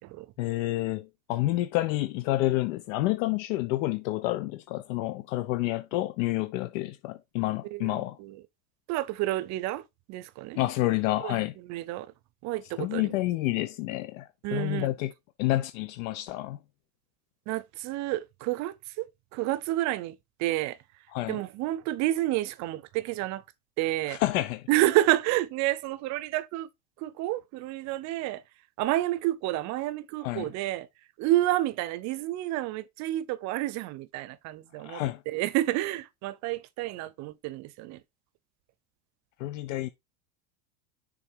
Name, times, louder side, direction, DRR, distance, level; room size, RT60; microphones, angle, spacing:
voice 1, 0.4-8.2 10.5-11.5 12.8-15.1 15.4-16.6 21.1-21.4 24.1-24.7 30.2-30.5 34.8-35.2 39.4-39.9, left 17 dB, 60° left, 0.8 m, -29 dB
voice 2, 7.7-8.4 8.9-9.8 10.1-10.6 11.2-11.4 11.6-12.1 12.4-13.2 14.4-14.9 17.5-19.1 19.3-20.8 21.3-23.4 23.8-24.2 24.7-26.7 27.0-28.4 28.8-30.9 31.2-38.0, right 16 dB, 40° right, 0.7 m, -29 dB
6.6 x 3.8 x 4.5 m
supercardioid pair, 140°, 44 cm